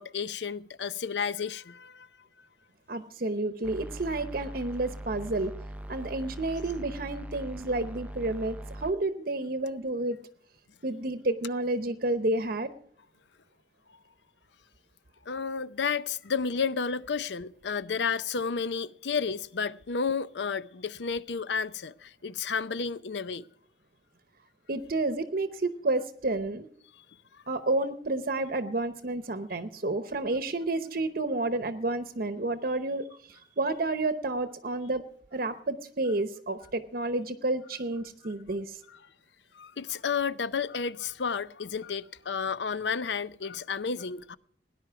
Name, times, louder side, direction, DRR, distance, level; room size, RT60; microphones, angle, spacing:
voice 1, 0.0-2.1 15.3-23.5 39.5-44.4, left 5 dB, 80° left, 0.6 m, -31 dB
voice 2, 2.9-5.5 5.9-10.2 10.8-12.7 24.7-26.7 27.5-35.0 35.3-38.8, right 2 dB, 55° right, 0.8 m, -30 dB
sound 1, 3.6-8.9, right 1 dB, 10° right, 0.5 m, -41 dB
18.0 x 10.5 x 4.7 m
head